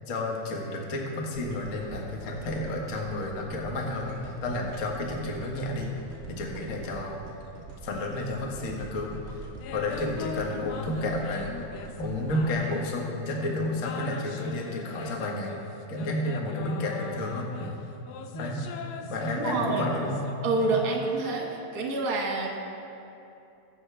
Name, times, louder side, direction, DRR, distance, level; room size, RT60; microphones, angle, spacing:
voice 1, 0.0-5.9 6.3-7.2 7.8-9.4 9.7-11.5 12.0-15.5 15.9-17.8 18.3-18.7 19.0-20.2 20.6-20.7, left 1 dB, 45° left, 0 dB, 1.0 m, -31 dB
sound 1, 1.3-13.5 14.1-14.2, right 3 dB, 90° right, 0.5 m, -45 dB
sound 2, 9.6-13.4 13.8-21.7, left 7 dB, 75° left, 1.7 m, -41 dB
voice 2, 19.4-19.9 20.4-22.6, right 3 dB, 40° right, -1 dB, 1.6 m, -27 dB
22.5 x 7.5 x 3.4 m, 2.8 s
omnidirectional pair, 3.5 m